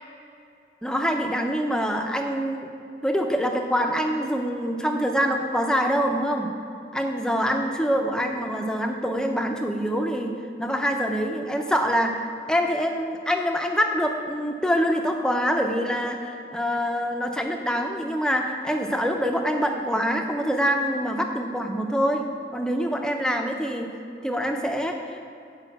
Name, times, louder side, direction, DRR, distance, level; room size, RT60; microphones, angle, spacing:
voice 1, 0.8-2.7 3.0-6.5 6.9-10.3 10.6-23.9 24.2-25.3, equal, 5° left, 3 dB, 0.5 m, -25 dB
9.0 x 5.0 x 5.8 m, 2.6 s
head